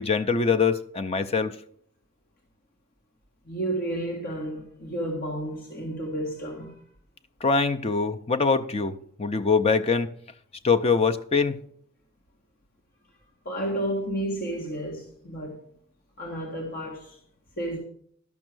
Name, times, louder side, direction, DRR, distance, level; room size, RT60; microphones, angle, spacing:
voice 1, 0.0-1.6 7.4-10.1 10.6-11.6, left 4 dB, 25° left, 0.5 m, -23 dB
voice 2, 3.4-6.8 13.4-15.6 16.2-17.2 17.6-17.8, right 1 dB, 45° left, 1.6 m, -31 dB
12.5 x 6.4 x 6.1 m
head